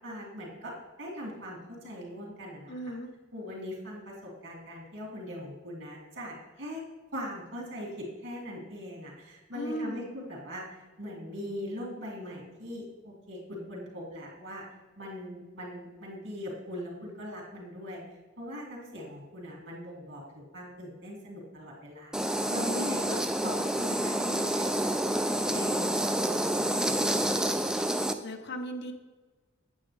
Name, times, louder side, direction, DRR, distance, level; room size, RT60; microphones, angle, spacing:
voice 1, 0.0-0.7 1.0-2.9 3.3-6.8 7.1-14.6 15.0-18.0 18.4-25.9 26.2-27.4, equal, 65° right, -2 dB, 2.6 m, -41 dB
voice 2, 2.7-3.1 9.5-10.1 28.2-28.9, equal, 55° left, 5 dB, 0.8 m, -36 dB
sound 1, 22.1-28.1, right 1 dB, 5° right, 0.3 m, -28 dB
8.9 x 7.7 x 3.3 m, 1.3 s
head